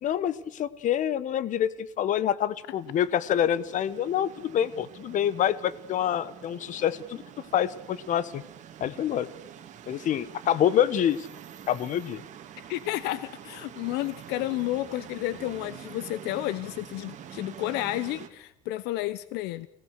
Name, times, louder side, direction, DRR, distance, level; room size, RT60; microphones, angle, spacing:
voice 1, 0.0-7.2 7.5-8.4 8.8-9.3 9.9-11.3 11.7-12.2, left 10 dB, 45° left, 17 dB, 1.2 m, -26 dB
sound 1, 2.5-18.3, right 9 dB, 45° right, 2.6 m, -46 dB
voice 2, 12.7-19.7, left 16 dB, 70° left, 16 dB, 0.9 m, -31 dB
27.5 x 18.0 x 6.6 m, 0.80 s
cardioid pair, 120°, 18 cm